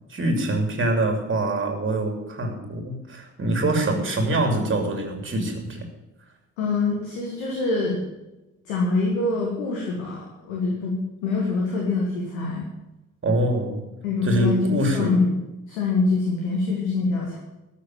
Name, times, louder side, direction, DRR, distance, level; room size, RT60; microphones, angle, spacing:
voice 1, 0.1-5.8 13.2-13.8 14.2-15.2, right 1 dB, 30° right, 4 dB, 3.0 m, -24 dB
voice 2, 6.6-8.0 8.6-12.7 14.0-15.3 15.7-17.4, left 3 dB, 70° left, -2 dB, 2.2 m, -24 dB
13.0 x 6.5 x 9.1 m, 0.99 s
figure-of-eight pair, 45°, 39 cm